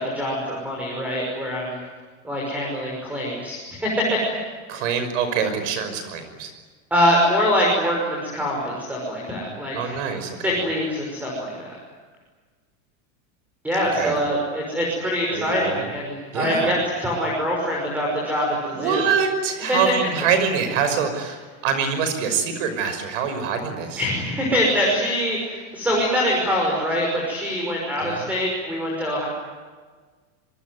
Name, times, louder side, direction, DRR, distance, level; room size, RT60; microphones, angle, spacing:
voice 1, 0.0-1.8 2.2-4.2 4.7-4.8 6.9-10.0 10.4-11.8 13.6-19.1 19.7-19.8 24.0-29.3, equal, 5° right, -2 dB, 6.0 m, -24 dB
voice 2, 4.7-6.5 9.7-10.6 14.0-14.2 15.3-15.9 16.3-16.7 18.7-24.1 28.0-28.2, right 6 dB, 60° right, 9 dB, 5.8 m, -25 dB
26.5 x 23.5 x 9.6 m, 1.4 s
supercardioid pair, 170°, 43 cm